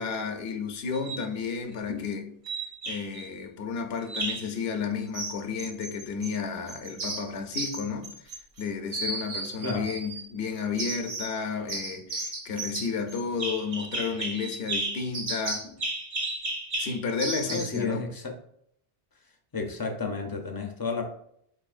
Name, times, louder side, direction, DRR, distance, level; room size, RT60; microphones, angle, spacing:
voice 1, 0.0-2.5 2.9-15.8 16.8-18.0, left 5 dB, 80° left, 0.8 m, -32 dB
sound 1, 0.9-1.3 2.5-3.3 4.1-4.5 5.1-6.4 6.7-8.6 8.9-10.3 10.8-11.4 11.7-17.8, right 2 dB, 40° right, 0.6 m, -34 dB
voice 2, 17.4-18.4 19.5-21.0, left 4 dB, 35° left, 0.4 m, -32 dB
4.1 x 3.2 x 2.4 m
omnidirectional pair, 1.0 m